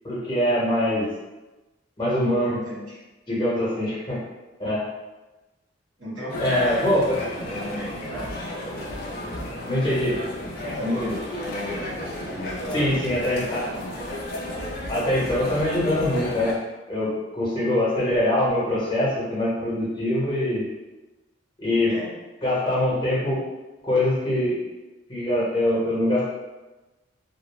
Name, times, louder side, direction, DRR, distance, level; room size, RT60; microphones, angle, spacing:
voice 1, 0.0-1.1 2.0-2.6 3.3-4.2 4.6-4.8 6.4-7.2 9.7-10.2 10.8-11.2 12.7-13.6 14.9-16.5 16.9-20.6 21.6-21.9 22.4-23.4 23.8-24.6 25.1-26.3, left 1 dB, 25° left, -8 dB, 0.9 m, -23 dB
voice 2, 2.4-3.0 6.0-8.4 10.6-13.2 13.7-13.8 21.9-22.1, equal, 80° right, -8 dB, 1.3 m, -36 dB
sound 1, 6.3-16.5, left 1 dB, 50° left, 0.5 m, -33 dB
2.5 x 2.0 x 3.0 m, 1.1 s
head